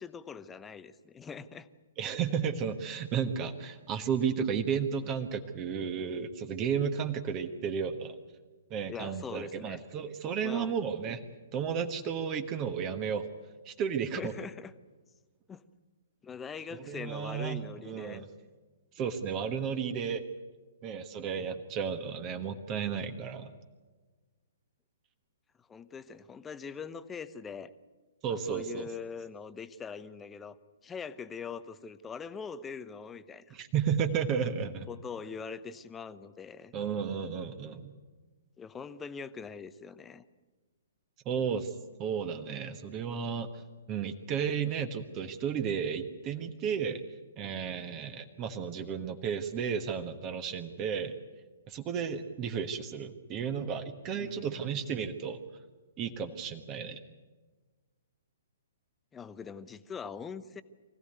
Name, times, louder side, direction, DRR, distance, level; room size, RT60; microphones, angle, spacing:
voice 1, 0.0-1.7 8.9-9.8 10.4-10.8 14.1-14.7 15.5-15.6 16.2-18.2 25.7-27.7 28.5-30.6 30.8-33.6 34.9-36.7 38.6-40.2 54.2-54.7 59.1-60.6, left 6 dB, 15° left, 13 dB, 0.9 m, -42 dB
voice 2, 2.0-8.2 8.7-11.2 11.5-13.3 13.6-14.3 16.7-18.2 18.9-20.2 20.8-23.5 28.2-28.9 33.5-34.9 36.7-37.9 41.2-41.7 42.0-43.5 43.9-47.0 47.4-51.1 51.7-55.4 56.0-57.0, right 7 dB, 25° right, 7 dB, 1.4 m, -33 dB
24.0 x 16.0 x 9.4 m, 1.3 s
figure-of-eight pair, 120°, 0 cm